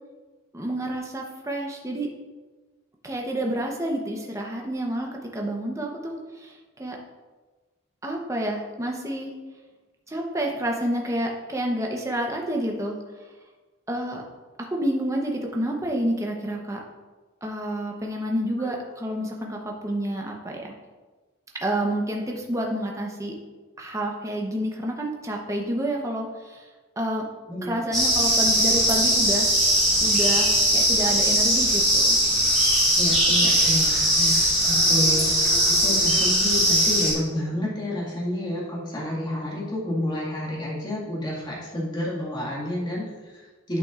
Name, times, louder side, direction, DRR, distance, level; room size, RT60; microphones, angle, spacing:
voice 1, 0.5-2.1 3.0-7.0 8.0-9.3 10.1-13.0 13.9-14.2 14.6-16.8 17.4-20.7 21.6-23.3 23.8-26.6 27.0-27.3 27.6-29.5 30.0-32.2, right 1 dB, 15° right, 0 dB, 0.8 m, -29 dB
voice 2, 27.5-27.8 33.0-43.8, left 1 dB, 20° left, -6 dB, 1.8 m, -30 dB
sound 1, 27.9-37.1, equal, ahead, 1.9 m, -20 dB
11.0 x 5.9 x 2.5 m, 1.3 s
head